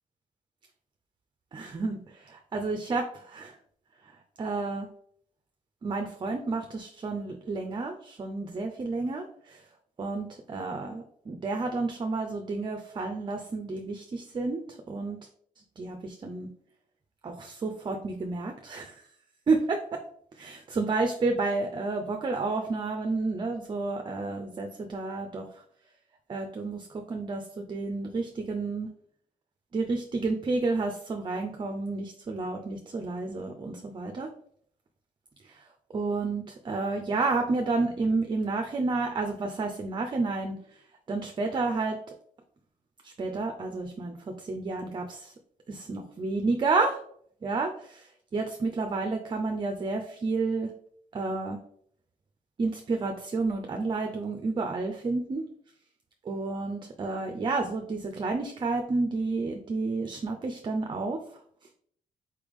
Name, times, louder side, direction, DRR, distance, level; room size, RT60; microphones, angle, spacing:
voice 1, 1.5-3.6 4.0-4.9 5.8-9.6 10.0-15.2 15.8-16.5 17.2-19.0 19.5-20.0 20.3-25.5 26.3-28.9 29.7-34.3 35.4-35.6 35.9-40.8 41.1-42.0 43.0-45.3 45.7-47.0 47.4-50.7 51.1-51.6 52.6-55.4 56.2-61.2, right 3 dB, 35° right, 4 dB, 0.5 m, -30 dB
4.3 x 3.3 x 3.5 m, 0.62 s
cardioid pair, 100°, 14 cm